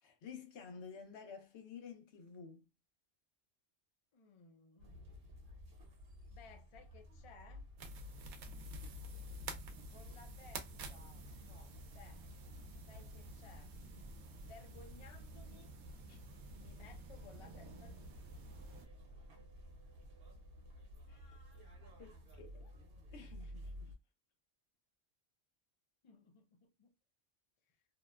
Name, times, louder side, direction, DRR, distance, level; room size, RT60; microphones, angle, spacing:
voice 1, 0.0-2.7 16.1-16.2 21.1-21.4 22.0-22.7 23.1-23.9, left 6 dB, 80° left, 1.0 m, -52 dB
voice 2, 4.1-5.3 6.3-7.6 9.9-12.2 12.9-13.7 14.4-15.8 16.5-18.3 22.5-22.7 26.0-26.9 27.7-27.8, left 5 dB, 45° left, 0.4 m, -60 dB
sound 1, 4.8-24.0, left 1 dB, 65° right, 1.0 m, -54 dB
sound 2, 7.8-18.9, right 3 dB, 85° right, 0.9 m, -51 dB
2.8 x 2.1 x 2.2 m
omnidirectional pair, 1.1 m